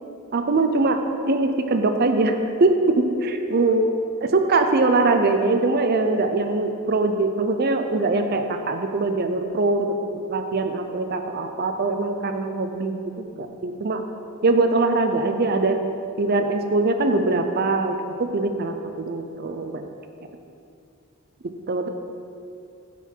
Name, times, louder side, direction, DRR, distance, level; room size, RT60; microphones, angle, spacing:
voice 1, 0.3-1.0 1.2-3.9 4.2-14.0 14.4-15.8 16.2-19.8 21.4-21.9, right 3 dB, 45° right, 6 dB, 0.5 m, -22 dB
10.0 x 4.1 x 4.5 m, 2.6 s
head